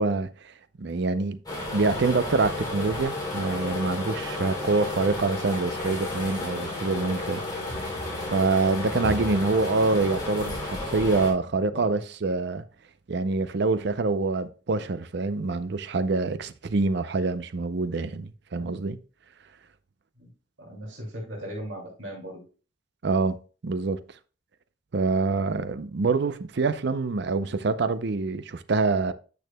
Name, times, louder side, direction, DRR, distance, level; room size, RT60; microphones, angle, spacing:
voice 1, 0.0-1.4 1.7-7.4 8.3-12.6 13.1-19.0 23.0-24.0 24.9-29.1, right 3 dB, 60° right, 0.5 m, -26 dB
sound 1, 1.5-11.3, left 2 dB, 20° left, 2.8 m, -32 dB
voice 2, 20.6-22.4, equal, 75° right, 2.5 m, -38 dB
9.3 x 6.3 x 2.2 m
head